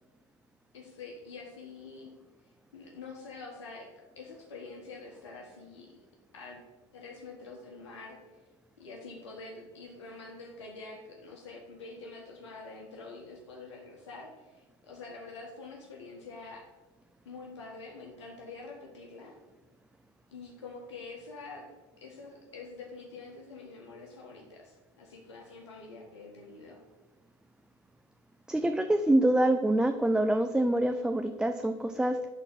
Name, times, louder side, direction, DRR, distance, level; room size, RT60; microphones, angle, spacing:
voice 1, 0.7-2.1 2.7-3.9 4.1-5.9 6.3-6.6 6.9-8.4 8.8-16.7 17.2-19.3 20.3-21.7 22.0-26.8, left 3 dB, 90° left, -1 dB, 1.5 m, -46 dB
voice 2, 28.5-32.3, right 1 dB, 5° right, 7 dB, 0.5 m, -26 dB
10.0 x 3.9 x 7.2 m, 1.2 s
hypercardioid pair, 90°, 14 cm